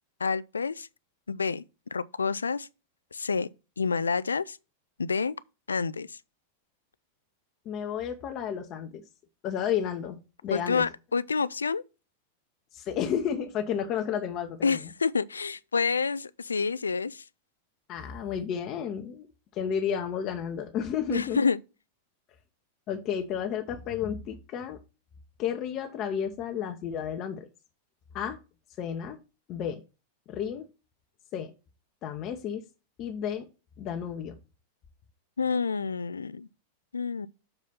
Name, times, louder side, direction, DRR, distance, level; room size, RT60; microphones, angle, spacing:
voice 1, 0.2-0.9 1.3-1.6 1.9-2.7 3.1-3.5 3.8-4.6 5.0-5.4 5.7-6.2 10.5-11.8 14.6-17.2 21.1-21.6 35.4-36.5 36.9-37.3, left 5 dB, 75° left, 0.3 m, -28 dB
voice 2, 7.7-9.0 9.4-10.8 12.7-14.9 17.9-19.3 19.5-21.4 22.9-24.8 25.4-27.5 28.1-28.4 28.8-29.2 29.5-29.8 30.3-30.7 31.3-31.5 32.0-32.6 33.0-33.5 33.8-34.4, left 8 dB, 35° left, 0.8 m, -32 dB
6.7 x 4.2 x 5.4 m
figure-of-eight pair, 90°, 0 cm